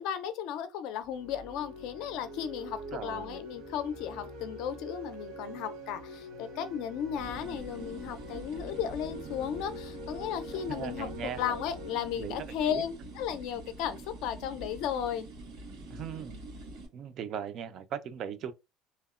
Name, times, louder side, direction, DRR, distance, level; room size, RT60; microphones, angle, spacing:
voice 1, 0.0-11.1 11.4-15.3, left 9 dB, 65° left, 0.4 m, -35 dB
sound 1, 1.0-13.7, equal, 75° right, 1.0 m, -45 dB
voice 2, 2.9-3.4 10.5-11.4 12.2-12.4 12.7-12.8 15.9-16.4 16.9-18.5, right 8 dB, 45° right, 0.3 m, -38 dB
sound 2, 7.2-16.9, right 2 dB, 90° right, 1.4 m, -45 dB
2.8 x 2.1 x 2.4 m
cardioid pair, 155°, 0 cm